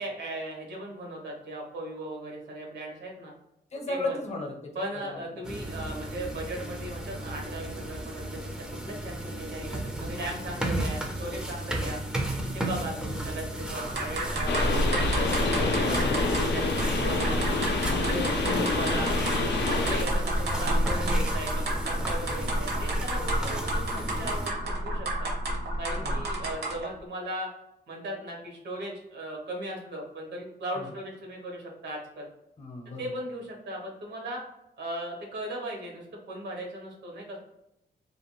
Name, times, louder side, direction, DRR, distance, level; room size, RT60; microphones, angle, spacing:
voice 1, 0.0-3.3 3.9-4.2 4.7-8.5 8.8-12.0 12.5-17.5 17.9-19.3 19.6-25.3 25.8-27.5 27.9-32.3 33.0-34.4 34.8-37.4, right 1 dB, 85° right, 0 dB, 0.9 m, -37 dB
voice 2, 3.7-5.2 5.5-5.8 11.7-11.9 13.0-13.3 16.9-17.2 18.4-18.5 22.2-22.6 23.4-23.6 26.0-26.2 30.7-30.9 32.6-33.2, left 2 dB, 40° left, 1 dB, 0.6 m, -37 dB
sound 1, 5.4-24.5, right 1 dB, 5° right, 0.3 m, -35 dB
sound 2, 13.7-26.9, right 1 dB, 70° right, 0.7 m, -30 dB
sound 3, 14.5-20.0, left 3 dB, 85° left, 0.4 m, -28 dB
2.5 x 2.2 x 3.0 m, 0.84 s
wide cardioid pair, 145°, 18 cm